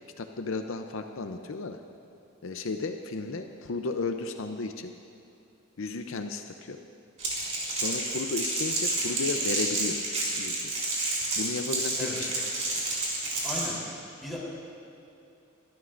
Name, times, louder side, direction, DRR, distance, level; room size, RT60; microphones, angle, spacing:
voice 1, 0.2-1.8 2.4-4.9 5.8-6.8 7.7-10.0 10.3-10.7 11.4-12.3, left 3 dB, 75° left, 6 dB, 0.6 m, -34 dB
Crackle, 7.2-13.7, right 2 dB, 35° right, 3.6 m, -30 dB
voice 2, 13.4-13.7 14.2-14.4, left 1 dB, ahead, -6 dB, 3.6 m, -35 dB
23.5 x 13.0 x 2.6 m, 2.8 s
head